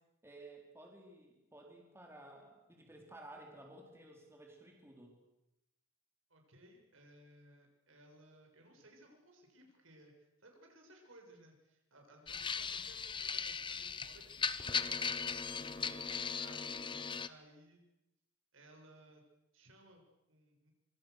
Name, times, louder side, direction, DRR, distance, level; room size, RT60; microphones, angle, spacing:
voice 1, 0.2-5.2 15.6-16.3, right 1 dB, 10° right, 1 dB, 4.1 m, -55 dB
voice 2, 6.3-14.9 15.5-15.9 16.4-17.8 18.5-19.2 19.5-20.7, right 1 dB, 70° right, 2 dB, 6.8 m, -61 dB
sound 1, 12.3-17.3, left 6 dB, 25° left, 0.9 m, -38 dB
25.5 x 25.5 x 6.7 m, 0.91 s
head